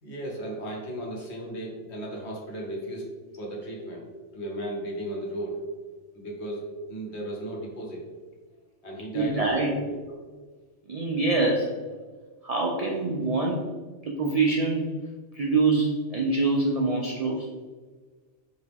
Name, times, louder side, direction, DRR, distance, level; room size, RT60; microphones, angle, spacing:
voice 1, 0.0-3.0 3.3-4.1 4.3-5.6 6.1-8.0 8.8-10.2, right 1 dB, 65° left, -1 dB, 1.2 m, -35 dB
voice 2, 9.1-9.7 10.9-11.7 12.4-13.6 14.1-14.8 15.3-17.5, right 3 dB, 70° right, -1 dB, 0.3 m, -25 dB
4.4 x 2.9 x 3.4 m, 1.4 s
omnidirectional pair, 1.2 m